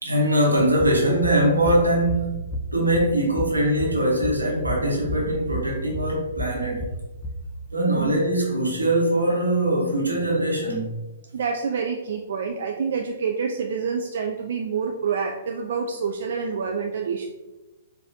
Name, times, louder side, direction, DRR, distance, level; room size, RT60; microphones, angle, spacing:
voice 1, 0.0-2.3 2.7-6.9 7.7-10.9, right 1 dB, 85° right, -2 dB, 1.1 m, -22 dB
sound 1, 0.8-7.7, equal, 20° left, 0.4 m, -33 dB
voice 2, 11.3-17.3, right 6 dB, 60° right, 3 dB, 0.3 m, -27 dB
4.7 x 2.6 x 2.7 m, 1.1 s
figure-of-eight pair, 115°, 0 cm